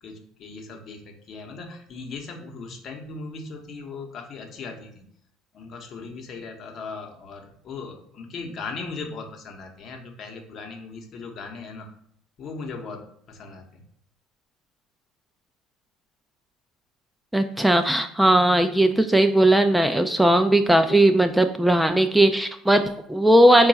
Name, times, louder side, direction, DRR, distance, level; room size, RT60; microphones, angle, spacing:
voice 1, 0.0-5.1 5.5-11.9 12.4-13.8, left 4 dB, 50° left, 4 dB, 0.9 m, -38 dB
voice 2, 17.3-23.7, right 1 dB, 5° right, 7 dB, 0.4 m, -18 dB
4.4 x 2.3 x 4.1 m, 0.70 s
hypercardioid pair, 65°, 0 cm